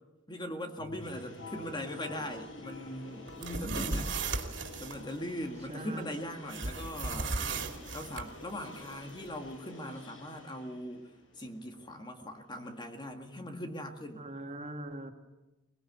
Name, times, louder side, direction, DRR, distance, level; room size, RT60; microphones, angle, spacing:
voice 1, 0.3-4.1 4.8-7.5 7.9-11.0 11.4-14.3, left 1 dB, 25° left, 5 dB, 1.9 m, -40 dB
sound 1, 0.8-10.3, left 3 dB, 65° left, 5.3 m, -53 dB
sound 2, 1.0-12.9, left 1 dB, 80° left, 6.4 m, -50 dB
sound 3, 3.3-5.0 6.5-8.3, right 3 dB, 65° right, 2.8 m, -35 dB
voice 2, 3.6-4.0 5.7-6.1 14.1-15.1, right 1 dB, 35° right, 4 dB, 2.4 m, -41 dB
22.5 x 21.0 x 8.2 m, 1.0 s
head